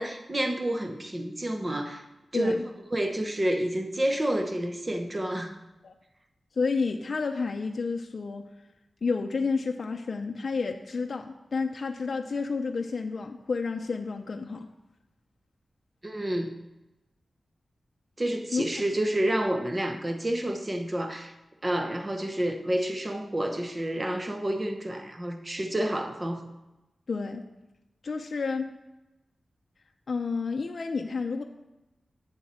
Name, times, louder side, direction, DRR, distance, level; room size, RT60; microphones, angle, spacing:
voice 1, 0.0-2.0 2.3-2.5 2.9-5.6 16.0-16.5 18.2-21.3 21.6-26.5, right 1 dB, 25° right, 5 dB, 0.9 m, -29 dB
voice 2, 2.3-2.6 5.8-5.9 6.6-8.4 9.0-14.7 18.5-18.7 27.1-27.4 28.0-28.7 30.1-31.4, left 4 dB, 55° left, 3 dB, 0.6 m, -30 dB
8.9 x 7.2 x 4.3 m, 0.99 s
wide cardioid pair, 135°, 0 cm